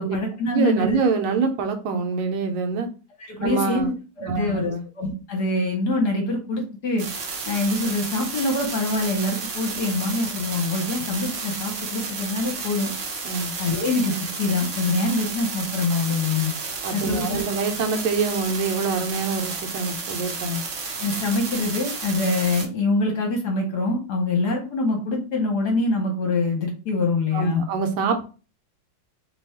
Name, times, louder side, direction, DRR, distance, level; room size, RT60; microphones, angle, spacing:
voice 1, 0.0-1.0 3.2-7.1 7.5-12.9 13.6-16.5 16.9-17.4 21.0-27.6, left 2 dB, 60° left, 1 dB, 1.3 m, -25 dB
voice 2, 0.5-2.9 3.4-3.9 4.2-4.8 13.2-13.5 16.8-20.6 27.3-28.3, right 4 dB, 80° right, 5 dB, 1.4 m, -25 dB
sound 1, 7.0-22.7, right 4 dB, 65° right, 0.7 m, -32 dB
3.4 x 2.3 x 4.1 m, 0.34 s
omnidirectional pair, 2.3 m